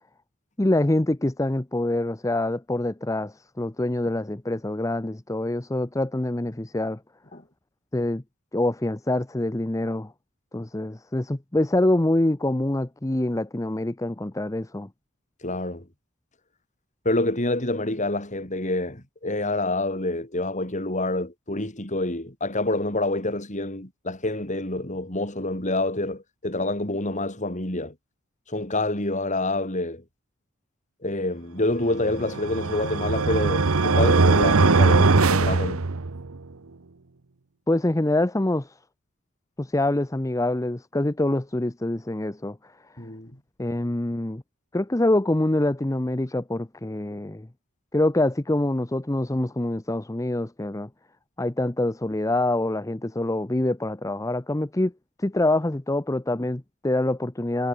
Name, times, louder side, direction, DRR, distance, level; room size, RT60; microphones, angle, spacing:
voice 1, 0.6-7.0 7.9-8.2 8.5-10.1 10.5-14.9 37.7-38.8 39.6-42.6 43.6-44.4 44.7-47.5 47.9-50.9 51.4-54.9 55.2-57.7, left 1 dB, 15° left, 0.7 m, -25 dB
voice 2, 15.4-15.9 17.0-27.9 28.5-30.0 31.0-35.8 43.0-43.3, left 2 dB, 35° left, 4.5 m, -27 dB
sound 1, 32.1-36.4, right 3 dB, 75° right, 1.0 m, -20 dB
head